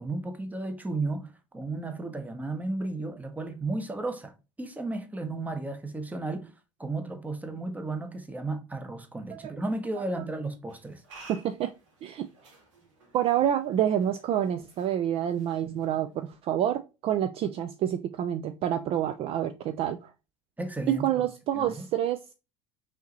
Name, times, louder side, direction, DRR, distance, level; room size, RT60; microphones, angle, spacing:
voice 1, 0.0-6.5 6.8-11.2 20.6-21.2 21.5-21.9, right 2 dB, 10° right, 0.8 m, -34 dB
sound 1, 10.7-16.3, right 3 dB, 65° right, 1.8 m, -55 dB
voice 2, 11.3-11.7 12.0-12.5 13.1-20.1 20.9-22.2, right 10 dB, 35° right, 0.4 m, -28 dB
5.6 x 2.8 x 2.9 m
figure-of-eight pair, 70°, 16 cm